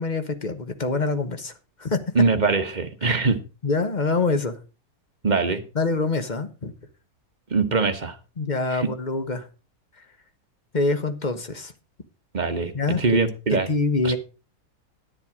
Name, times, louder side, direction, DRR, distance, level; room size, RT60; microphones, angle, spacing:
voice 1, 0.0-1.5 1.8-2.0 3.0-3.1 3.6-4.6 5.7-6.7 8.4-9.5 10.7-11.7 12.7-13.0 13.7-14.2, left 3 dB, 30° left, 1.2 m, -25 dB
voice 2, 2.1-3.4 5.2-5.6 7.5-8.2 8.7-8.9 12.3-12.7 13.0-13.7 14.0-14.2, right 4 dB, 30° right, 1.2 m, -22 dB
10.5 x 9.9 x 4.9 m
omnidirectional pair, 1.7 m